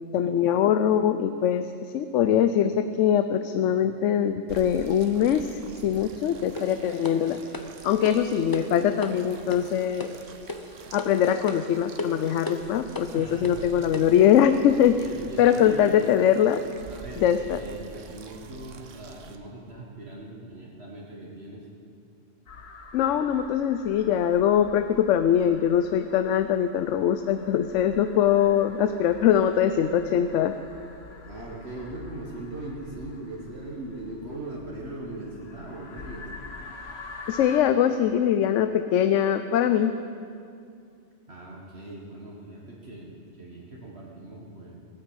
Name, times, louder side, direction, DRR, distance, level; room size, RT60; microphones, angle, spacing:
voice 1, 0.1-7.4 7.8-10.1 10.9-15.0 15.4-16.6 17.2-17.6 22.9-30.5 37.3-39.9, left 9 dB, 75° left, 10 dB, 0.9 m, -22 dB
sound 1, 4.5-19.4, right 5 dB, 75° right, 1.3 m, -47 dB
sound 2, 6.6-14.3, left 2 dB, 20° left, 0.6 m, -38 dB
voice 2, 13.1-13.9 15.0-16.1 16.9-21.7 31.2-36.4 41.3-44.8, right 2 dB, 55° right, -4 dB, 1.9 m, -40 dB
sound 3, 22.5-37.6, left 4 dB, 55° left, 1.4 m, -46 dB
18.0 x 8.7 x 8.0 m, 2.4 s
omnidirectional pair, 1.3 m